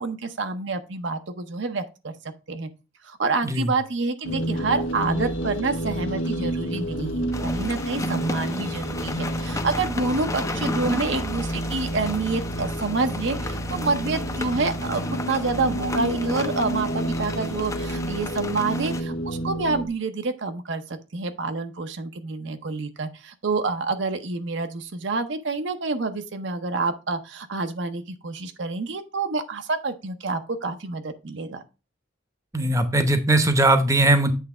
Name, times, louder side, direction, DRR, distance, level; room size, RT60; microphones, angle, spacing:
voice 1, 0.0-2.1 2.5-2.7 3.0-31.6, right 3 dB, 65° right, 0.7 m, -28 dB
voice 2, 3.4-3.7 32.5-34.3, right 2 dB, 15° right, 0.8 m, -20 dB
sound 1, 4.2-19.9, right 1 dB, 90° left, 1.2 m, -30 dB
sound 2, 7.3-19.0, left 2 dB, 15° left, 0.5 m, -34 dB
8.3 x 3.3 x 4.8 m
head